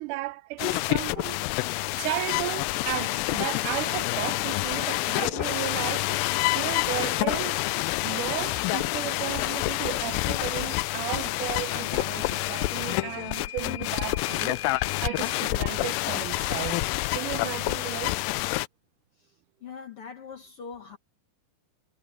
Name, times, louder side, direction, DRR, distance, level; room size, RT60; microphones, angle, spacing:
voice 1, 0.0-1.4 2.0-6.2 6.5-16.9 17.1-18.2, right 19 dB, 75° right, 2.1 m, -35 dB
sound 1, 0.6-18.7, left 20 dB, 85° left, 2.2 m, -28 dB
Microwave oven / Alarm, 11.5-15.5, left 13 dB, 45° left, 4.0 m, -41 dB
voice 2, 19.6-21.0, left 6 dB, 60° left, 1.5 m, -41 dB
omnidirectional pair, 4.1 m